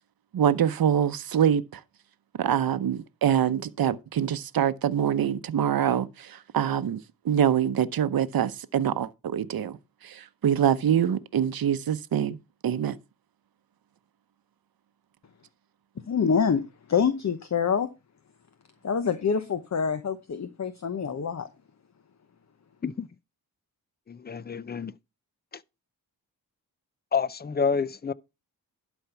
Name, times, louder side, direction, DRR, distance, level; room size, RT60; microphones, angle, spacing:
voice 1, 0.3-1.8 2.4-9.8 10.0-12.4 12.6-13.0, right 9 dB, 65° right, 0.8 m, -25 dB
voice 2, 16.1-16.6 16.9-17.9 18.8-21.5, left 6 dB, 45° left, 0.9 m, -26 dB
voice 3, 24.1-24.9 27.1-28.1, left 5 dB, 25° left, 0.5 m, -28 dB
11.5 x 4.5 x 5.7 m
cardioid pair, 65°, 38 cm